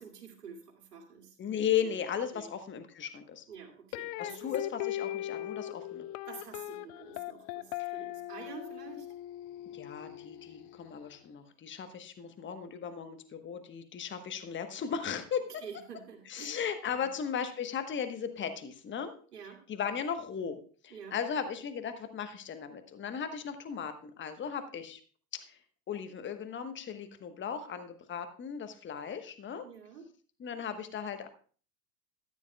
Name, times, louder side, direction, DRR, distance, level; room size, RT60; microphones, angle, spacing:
voice 1, 0.0-1.4 1.8-1.9 2.3-2.5 3.5-4.5 6.3-9.1 15.6-16.5 16.9-17.1 19.3-19.6 20.9-21.2 29.6-30.1, right 6 dB, 75° right, 1 dB, 2.5 m, -48 dB
voice 2, 1.4-3.4 4.2-6.1 7.8-7.9 9.7-15.6 16.2-19.1 19.7-20.5 20.8-25.0 25.3-25.6 25.9-29.6 30.4-31.3, left 8 dB, 25° left, 8 dB, 1.2 m, -36 dB
sound 1, 3.9-11.0, left 14 dB, 45° left, 0.5 m, -39 dB
13.5 x 10.0 x 2.3 m, 0.42 s
hypercardioid pair, 80°, 47 cm